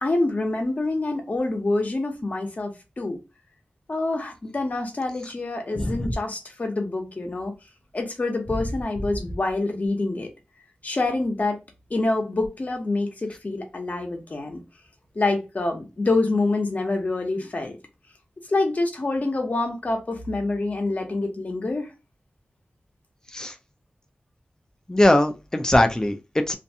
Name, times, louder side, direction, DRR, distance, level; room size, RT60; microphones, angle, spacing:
voice 1, 0.0-3.2 3.9-7.5 7.9-10.3 10.8-11.6 11.9-14.6 15.1-17.8 18.5-21.9, left 2 dB, 45° left, 0.8 m, -26 dB
voice 2, 5.7-6.1 23.3-23.5 24.9-26.6, left 1 dB, 20° left, 0.5 m, -21 dB
2.6 x 2.2 x 2.7 m
wide cardioid pair, 90°, 4 cm